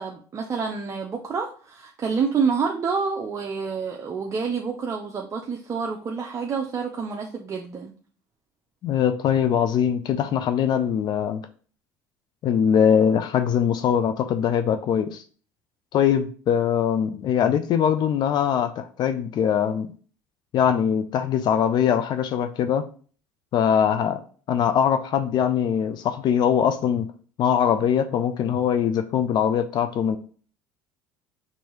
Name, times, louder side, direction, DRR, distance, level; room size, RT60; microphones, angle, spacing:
voice 1, 0.0-7.9, right 5 dB, 35° right, 0.6 m, -28 dB
voice 2, 8.8-11.4 12.4-15.2 15.9-19.9 20.5-22.9 23.5-24.2 24.5-27.1 27.4-30.2, left 8 dB, 55° left, 0.4 m, -22 dB
4.6 x 2.7 x 3.0 m
hypercardioid pair, 75°, 9 cm